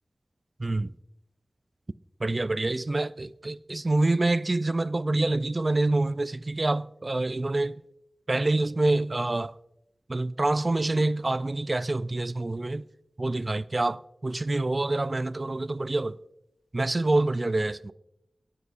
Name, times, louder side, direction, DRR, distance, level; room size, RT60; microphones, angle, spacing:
voice 1, 0.6-0.9 2.2-7.8 8.3-9.5 10.1-12.9 13.2-16.2 16.7-17.9, right 2 dB, 40° right, 0.3 m, -26 dB
18.0 x 9.6 x 2.5 m
wide cardioid pair, 65°, 0 cm